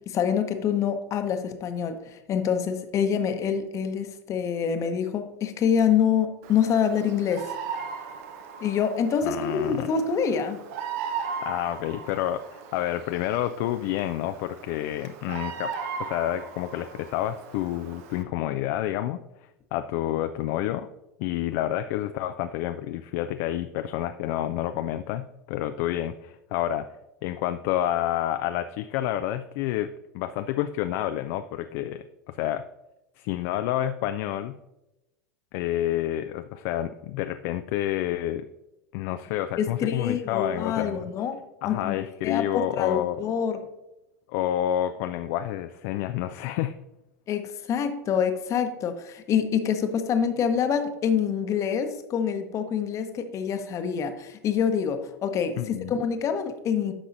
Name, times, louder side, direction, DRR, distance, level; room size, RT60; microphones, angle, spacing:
voice 1, 0.1-7.5 8.6-10.6 39.6-42.0 42.2-43.6 47.3-56.9, left 7 dB, 35° left, 8 dB, 0.9 m, -26 dB
Bird vocalization bird call bird song, 6.4-18.2, right 6 dB, 55° right, 0.8 m, -38 dB
voice 2, 9.2-9.9 11.4-15.7 16.0-20.9 21.2-26.9 27.2-29.9 30.1-32.6 33.2-34.5 35.5-38.5 38.9-41.1 41.6-43.2 44.3-46.7 55.6-55.9, left 12 dB, 50° left, 9 dB, 0.4 m, -29 dB
10.0 x 6.1 x 2.6 m, 0.94 s
figure-of-eight pair, 85°, 9 cm